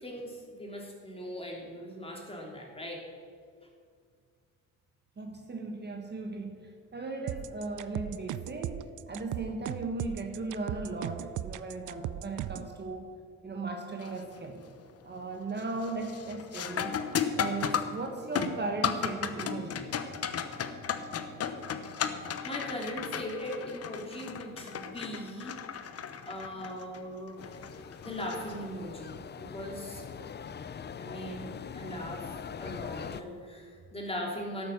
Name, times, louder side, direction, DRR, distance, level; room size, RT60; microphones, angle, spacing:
voice 1, 0.0-3.0 22.4-25.9 26.3-27.4 28.0-30.0 31.0-31.5 31.7-34.7, equal, 20° left, -1 dB, 3.1 m, -39 dB
voice 2, 5.2-13.1 13.4-14.6 15.0-17.0 17.3-19.8, right 3 dB, 35° right, 3 dB, 1.5 m, -37 dB
sound 1, 7.3-12.7, right 13 dB, 75° right, 0.5 m, -37 dB
sound 2, 14.0-14.4 14.8-15.2 15.6-29.1 31.6-31.7 32.5-32.8, left 7 dB, 55° left, 1.0 m, -35 dB
sound 3, 27.4-33.2, left 7 dB, 35° left, 0.5 m, -42 dB
12.5 x 9.0 x 6.8 m, 2.2 s
cardioid pair, 90°, 30 cm